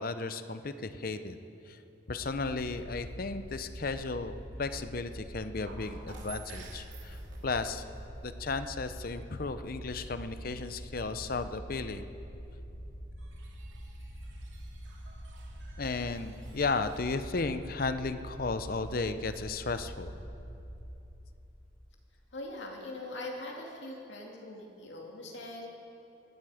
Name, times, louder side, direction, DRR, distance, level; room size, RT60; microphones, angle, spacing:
voice 1, 0.0-1.4 1.7-1.8 2.1-7.8 8.2-12.1 15.8-20.1, left 3 dB, 50° left, 10 dB, 0.6 m, -34 dB
sound 1, 2.2-20.9, equal, 20° right, 3.4 m, -45 dB
sound 2, 5.6-8.4 13.1-17.2 17.5-17.6, right 4 dB, 80° right, 2.5 m, -53 dB
voice 2, 22.3-25.7, left 2 dB, 70° left, 0 dB, 2.5 m, -42 dB
19.5 x 13.5 x 5.0 m, 2.8 s
head